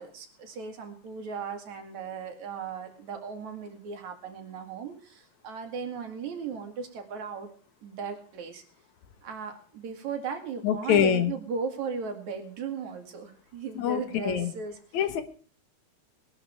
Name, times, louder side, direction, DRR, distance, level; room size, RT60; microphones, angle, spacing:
voice 1, 0.0-7.5 7.8-8.6 9.2-14.8, right 5 dB, 70° right, 5 dB, 3.4 m, -37 dB
voice 2, 10.6-11.3 13.8-14.5 14.9-15.2, left 9 dB, 70° left, 10 dB, 2.5 m, -25 dB
20.5 x 12.0 x 3.4 m, 0.41 s
omnidirectional pair, 3.5 m